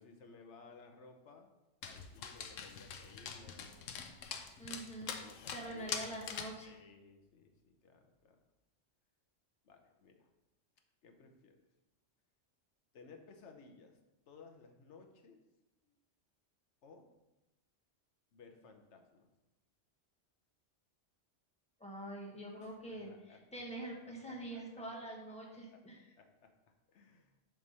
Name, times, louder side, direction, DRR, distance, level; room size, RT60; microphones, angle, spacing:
voice 1, 0.0-1.5 1.8-3.9 5.1-6.2 6.6-8.4 9.6-10.3 11.0-11.6 12.9-14.0 14.3-15.4 15.8-16.0 16.8-17.1 18.3-19.3 22.6-23.4 23.8-25.4 25.7-25.8 26.2-26.5 26.9-27.3, left 4 dB, 65° left, 5 dB, 1.2 m, -59 dB
Dog, 1.8-6.6, left 6 dB, 90° left, 1.0 m, -44 dB
voice 2, 4.6-5.1 5.5-6.7 21.8-23.1 23.5-25.9, right 1 dB, 5° left, -2 dB, 1.3 m, -45 dB
7.8 x 3.5 x 5.5 m, 0.99 s
omnidirectional pair, 1.3 m